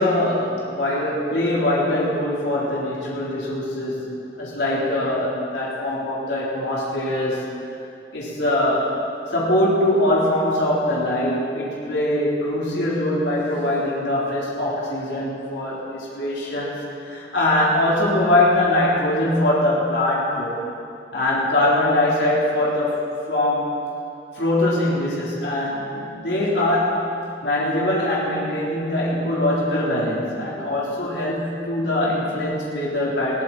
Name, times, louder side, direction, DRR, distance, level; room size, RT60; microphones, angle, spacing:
voice 1, 0.0-7.5 8.1-8.9 9.3-20.6 21.1-23.7 24.3-27.1 27.4-33.4, left 1 dB, 75° left, -6 dB, 3.8 m, -22 dB
21.0 x 16.0 x 4.3 m, 2.6 s
head